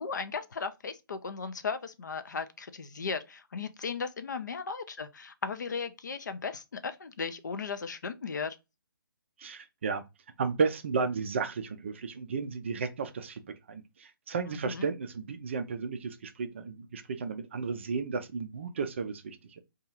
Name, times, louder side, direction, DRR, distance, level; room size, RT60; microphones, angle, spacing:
voice 1, 0.0-8.6 14.6-14.9, left 5 dB, 55° left, 0.4 m, -36 dB
voice 2, 9.4-10.0 10.4-13.4 13.7-19.6, right 5 dB, 30° right, 0.3 m, -33 dB
2.7 x 2.3 x 2.8 m
figure-of-eight pair, 140°, 12 cm